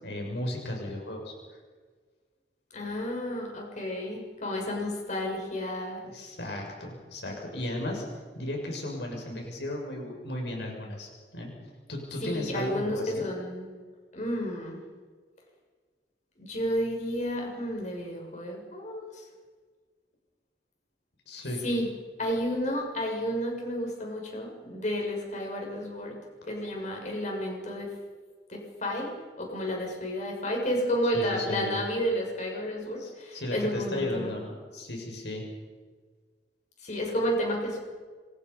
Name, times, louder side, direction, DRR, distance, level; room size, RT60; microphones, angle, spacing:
voice 1, 0.0-1.3 6.1-8.0 8.3-11.5 11.9-13.3 21.3-21.6 31.1-31.8 33.0-35.4, left 1 dB, 75° left, 1 dB, 6.4 m, -35 dB
voice 2, 2.7-6.0 12.2-13.7 14.1-14.8 16.4-19.2 21.6-21.9 22.2-26.1 26.5-27.9 28.5-29.1 29.4-34.3 36.8-37.8, equal, 45° left, 0 dB, 6.8 m, -31 dB
27.5 x 25.0 x 5.6 m, 1.5 s
head